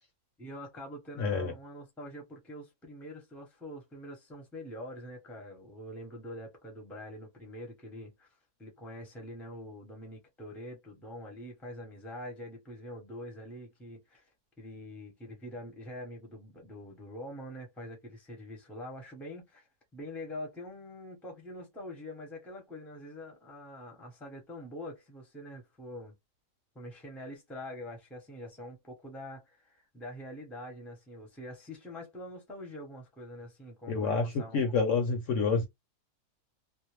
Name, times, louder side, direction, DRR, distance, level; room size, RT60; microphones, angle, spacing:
voice 1, 0.4-8.3 8.6-14.3 14.6-19.7 19.9-26.2 26.7-34.7, left 1 dB, ahead, 0.6 m, -45 dB
voice 2, 1.2-1.5 33.9-35.7, left 4 dB, 65° left, 0.8 m, -28 dB
2.5 x 2.0 x 3.0 m
omnidirectional pair, 1.6 m